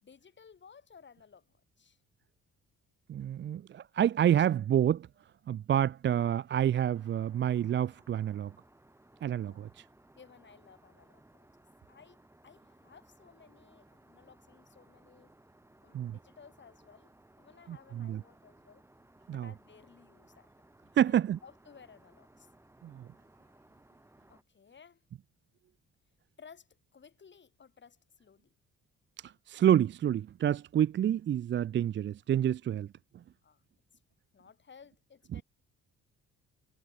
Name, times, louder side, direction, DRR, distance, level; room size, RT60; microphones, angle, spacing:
voice 1, 0.0-2.0 9.4-9.7 10.2-11.5 11.9-15.4 15.8-18.8 19.3-20.5 21.0-22.5 24.3-25.0 26.4-28.5 33.4-33.6 34.3-35.4, left 6 dB, 40° left, 2.3 m, -57 dB
voice 2, 3.1-5.1 5.5-8.5 9.2-9.8 15.9-16.2 17.7-18.2 19.3-19.5 21.0-21.4 22.8-23.1 29.2-32.9 35.3-35.4, right 10 dB, 40° right, 0.4 m, -28 dB
Aircraft, 6.9-24.4, right 1 dB, 10° right, 2.2 m, -62 dB
cardioid pair, 90°, 30 cm